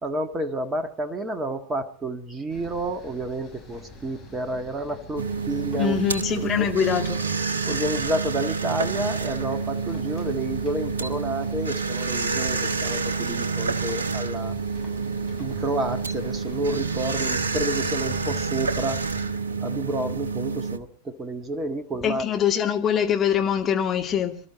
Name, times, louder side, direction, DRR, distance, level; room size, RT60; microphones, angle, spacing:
voice 1, 0.0-6.0 6.4-6.7 7.7-14.5 15.4-19.0 19.6-22.2, right 1 dB, 15° right, 1.6 m, -30 dB
sound 1, 2.5-19.3, left 2 dB, 5° left, 7.0 m, -44 dB
sound 2, 5.2-20.8, right 4 dB, 70° right, 0.9 m, -28 dB
voice 2, 5.8-7.2 22.0-24.4, left 8 dB, 25° left, 2.2 m, -23 dB
26.0 x 12.5 x 4.2 m
figure-of-eight pair, 90°, 0 cm